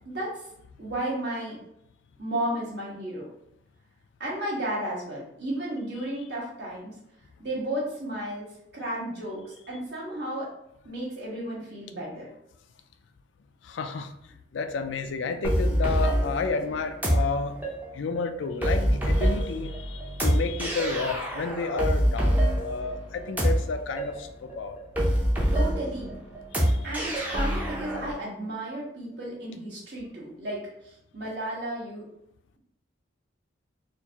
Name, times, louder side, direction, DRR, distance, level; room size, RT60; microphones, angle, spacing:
voice 1, 0.0-0.5 0.8-1.6 2.2-3.3 4.2-6.9 7.4-8.5 8.7-10.5 10.8-12.3 25.5-26.1 26.8-32.0, right 1 dB, 55° right, -5 dB, 1.4 m, -33 dB
voice 2, 13.6-14.1 14.5-17.6 17.9-24.3 24.5-24.8 26.5-26.9, left 4 dB, 70° left, 8 dB, 0.4 m, -31 dB
sound 1, 15.4-28.1, equal, 10° right, 0.6 m, -26 dB
4.4 x 2.5 x 2.8 m, 0.78 s
head